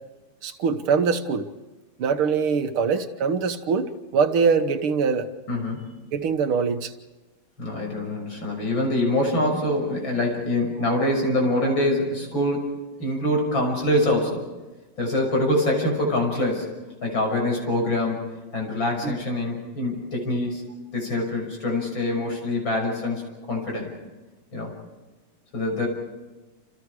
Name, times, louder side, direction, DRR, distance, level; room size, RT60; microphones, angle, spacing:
voice 1, 0.4-1.5 2.0-5.3 6.1-6.9 19.0-19.2, right 5 dB, 80° right, 8 dB, 2.1 m, -23 dB
voice 2, 5.5-5.9 7.6-12.7 13.0-14.4 15.0-16.7 17.0-18.2 18.5-20.6 20.9-23.2 23.5-23.9 24.5-24.7 25.5-25.9, left 1 dB, 65° left, 1 dB, 6.9 m, -24 dB
28.5 x 28.0 x 4.8 m, 1.2 s
omnidirectional pair, 2.3 m